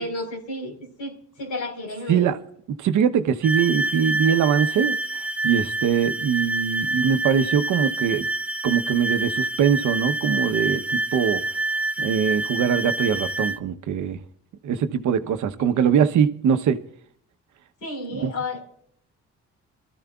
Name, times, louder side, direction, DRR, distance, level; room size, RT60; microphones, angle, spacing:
voice 1, 0.0-2.3 17.8-18.6, left 2 dB, 80° left, 4.5 m, -32 dB
voice 2, 2.7-5.0 5.4-8.3 8.6-11.4 12.0-14.2 14.6-16.8 18.1-18.3, right 8 dB, 75° right, 1.0 m, -22 dB
sound 1, 3.4-13.6, right 2 dB, 5° right, 0.5 m, -27 dB
25.0 x 13.0 x 2.4 m
cardioid pair, 90°, 30 cm